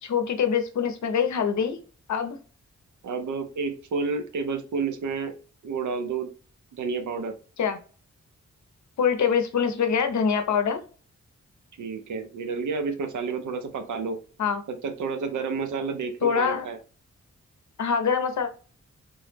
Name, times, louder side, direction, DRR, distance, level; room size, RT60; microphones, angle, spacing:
voice 1, 0.0-1.8 2.1-2.4 7.6-7.8 9.0-10.8 14.4-14.6 16.2-16.7 17.8-18.5, left 6 dB, 75° left, 7 dB, 0.6 m, -24 dB
voice 2, 3.0-5.3 5.6-6.3 6.7-7.3 11.8-14.2 14.7-16.8, right 4 dB, 85° right, 7 dB, 0.6 m, -30 dB
3.5 x 2.0 x 3.2 m, 0.38 s
cardioid pair, 75°, 29 cm